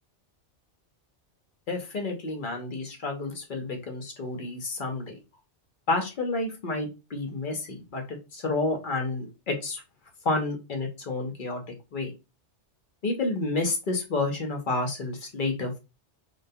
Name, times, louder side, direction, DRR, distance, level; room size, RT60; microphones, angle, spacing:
voice 1, 1.7-5.2 5.9-9.8 10.2-11.6 11.9-12.1 13.0-15.8, left 3 dB, 55° left, 2 dB, 0.7 m, -30 dB
2.2 x 2.2 x 2.6 m, 0.27 s
omnidirectional pair, 1.2 m